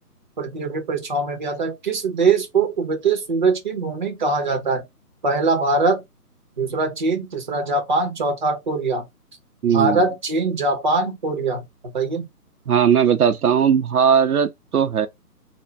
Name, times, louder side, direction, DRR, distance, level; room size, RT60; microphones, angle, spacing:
voice 1, 0.4-4.8 5.2-6.0 6.6-9.0 9.6-11.6 11.9-12.3, right 3 dB, 30° right, 0.7 m, -22 dB
voice 2, 9.6-10.0 12.7-15.1, right 7 dB, 70° right, 0.6 m, -18 dB
3.4 x 2.1 x 3.2 m
figure-of-eight pair, 150°, 47 cm